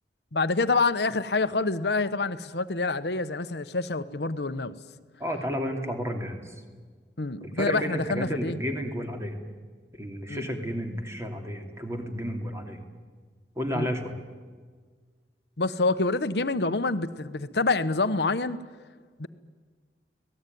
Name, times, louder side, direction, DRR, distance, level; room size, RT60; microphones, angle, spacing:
voice 1, 0.3-4.7 7.2-8.6 10.3-10.4 13.7-13.9 15.6-18.6 19.2-19.3, left 3 dB, 65° left, 1.1 m, -27 dB
voice 2, 5.2-6.5 7.4-9.4 10.0-12.8 13.6-14.1, equal, 15° right, 2.8 m, -32 dB
25.5 x 19.0 x 9.4 m
head